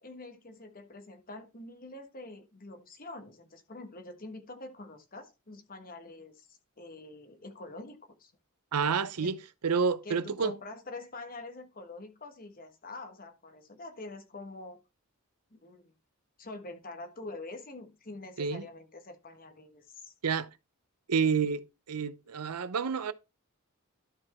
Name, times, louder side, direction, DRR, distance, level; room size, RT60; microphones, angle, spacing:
voice 1, 0.0-8.3 9.2-9.3 10.0-14.8 15.5-15.9 16.4-20.1, left 2 dB, 40° left, 1.4 m, -45 dB
voice 2, 8.7-9.4 9.6-10.5 18.4-18.6 20.2-20.5 21.1-23.1, right 5 dB, 90° right, 0.7 m, -29 dB
12.0 x 4.7 x 4.3 m
head